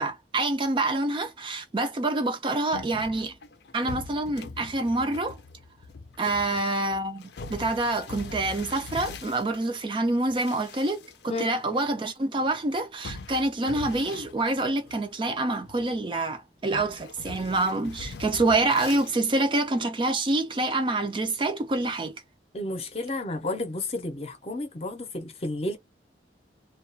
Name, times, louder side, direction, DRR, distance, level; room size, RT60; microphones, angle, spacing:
voice 1, 0.0-3.3 3.7-5.4 6.2-22.2, right 2 dB, 30° right, 0.4 m, -27 dB
sound 1, 2.7-9.6 10.2-11.5 11.8-11.9 13.0-15.3 15.6-16.1 16.7-19.1, left 4 dB, 75° left, 0.5 m, -42 dB
voice 2, 22.5-25.8, left 2 dB, 35° left, 0.6 m, -32 dB
2.3 x 2.3 x 2.5 m
head